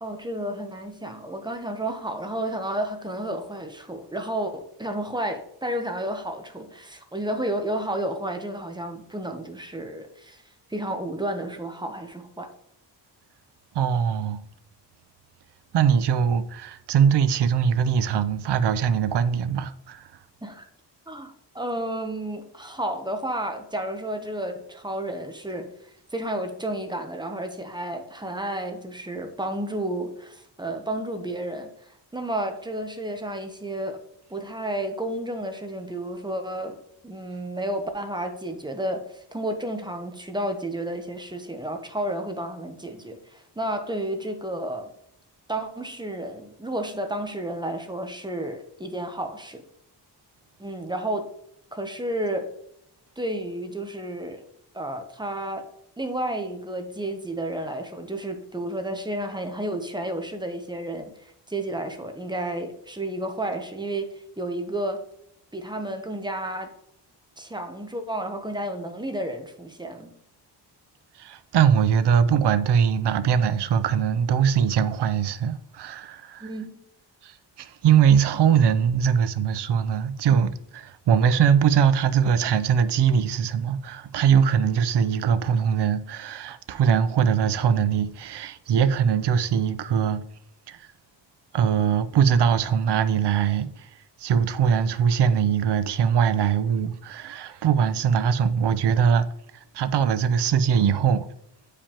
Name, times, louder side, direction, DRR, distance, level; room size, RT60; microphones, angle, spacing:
voice 1, 0.0-10.4 10.7-12.5 20.4-20.6 21.1-25.7 26.1-31.7 32.1-34.0 34.3-36.8 37.0-44.9 45.5-49.6 50.6-51.3 51.7-52.5 53.2-54.4 54.7-55.7 56.0-65.0 65.5-66.7 67.4-70.1 76.4-76.8, right 1 dB, 10° right, 0.8 m, -31 dB
voice 2, 13.7-14.4 15.7-20.0 71.2-76.5 77.2-90.2 90.7-90.9 91.5-93.9 94.2-99.3 99.7-101.2, right 7 dB, 70° right, 0.6 m, -22 dB
8.7 x 5.0 x 2.9 m
wide cardioid pair, 140°, 43 cm